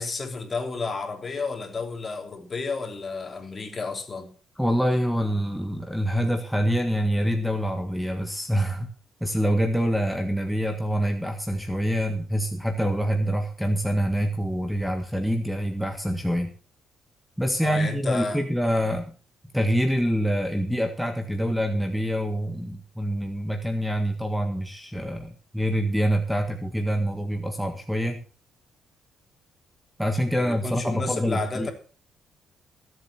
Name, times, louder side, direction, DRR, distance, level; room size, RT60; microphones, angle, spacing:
voice 1, 0.0-4.3 17.6-18.4 30.3-31.7, left 4 dB, 35° left, 5 dB, 3.2 m, -31 dB
voice 2, 4.6-8.9 9.2-16.5 17.4-19.0 19.5-28.2 30.0-31.7, equal, ahead, 5 dB, 1.6 m, -26 dB
16.0 x 7.9 x 5.8 m, 0.38 s
cardioid pair, 90°, 0 cm